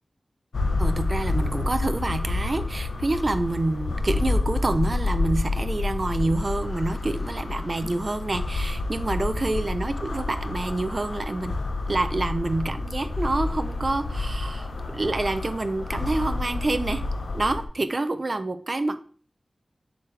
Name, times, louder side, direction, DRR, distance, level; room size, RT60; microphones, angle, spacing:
supernatural breath, 0.5-17.7, left 2 dB, 90° left, 0.8 m, -29 dB
voice 1, 0.8-11.6 11.9-17.0 17.3-19.0, right 2 dB, 40° right, 10 dB, 0.5 m, -27 dB
7.2 x 4.7 x 3.3 m, 0.43 s
wide cardioid pair, 95°, 0 cm